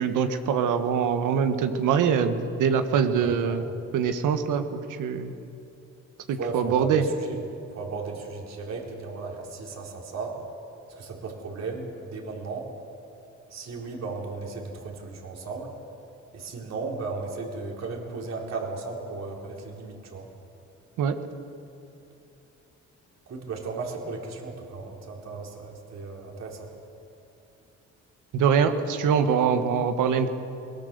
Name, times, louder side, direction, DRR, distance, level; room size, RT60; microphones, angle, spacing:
voice 1, 0.0-3.6 3.9-5.3 6.3-7.1 21.0-21.2 28.3-30.3, right 7 dB, 85° right, 8 dB, 1.5 m, -23 dB
voice 2, 3.1-3.6 6.4-7.4 7.7-10.4 11.0-12.7 13.5-15.7 16.3-20.3 23.3-26.7, right 3 dB, 60° right, 0 dB, 4.1 m, -35 dB
21.5 x 19.0 x 6.9 m, 2.7 s
cardioid pair, 90°, 30 cm